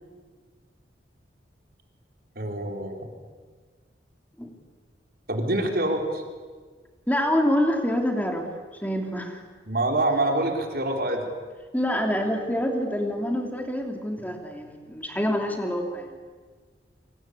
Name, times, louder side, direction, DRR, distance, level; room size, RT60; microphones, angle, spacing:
voice 1, 2.4-3.1 5.3-6.2 9.7-11.2, right 1 dB, 55° right, 3 dB, 4.4 m, -25 dB
voice 2, 7.1-8.5 8.8-9.4 11.7-16.2, equal, 10° left, 3 dB, 2.9 m, -26 dB
28.0 x 25.0 x 8.4 m, 1.5 s
head